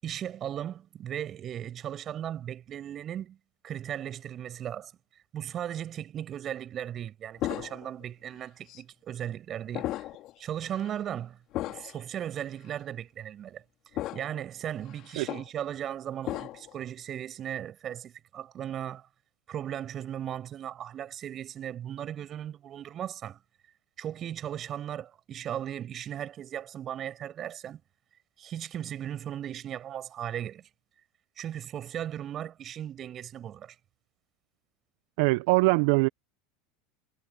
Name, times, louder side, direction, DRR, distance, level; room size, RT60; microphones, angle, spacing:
voice 1, 0.0-3.4 3.6-4.9 5.3-9.9 10.4-11.4 11.7-13.6 14.1-19.0 19.5-23.4 24.0-27.8 28.4-30.6 31.4-33.7, right 10 dB, 40° right, 6.3 m, -37 dB
sound 1, 7.4-8.0 8.7-8.8 9.7-10.3 10.7-10.9 11.5-12.0 12.7-12.8 14.0-14.4 14.8-15.5 16.2-16.7, left 15 dB, 50° left, 3.3 m, -35 dB
voice 2, 35.2-36.1, right 25 dB, 65° right, 1.2 m, -22 dB
hypercardioid pair, 85°, 0 cm